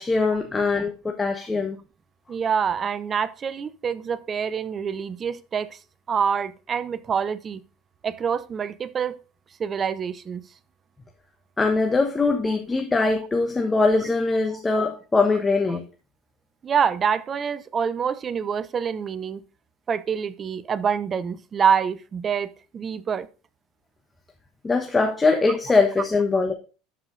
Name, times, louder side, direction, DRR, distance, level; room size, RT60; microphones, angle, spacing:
voice 1, 0.0-1.8 11.6-15.8 24.6-26.5, left 3 dB, 20° left, 1.1 m, -22 dB
voice 2, 2.3-5.8 6.1-7.6 8.0-9.2 9.6-10.4 12.5-12.6 14.5-14.6 15.7-15.8 16.6-19.4 19.9-23.3, right 7 dB, 35° right, 0.7 m, -26 dB
11.5 x 5.0 x 3.8 m
hypercardioid pair, 90°, 0 cm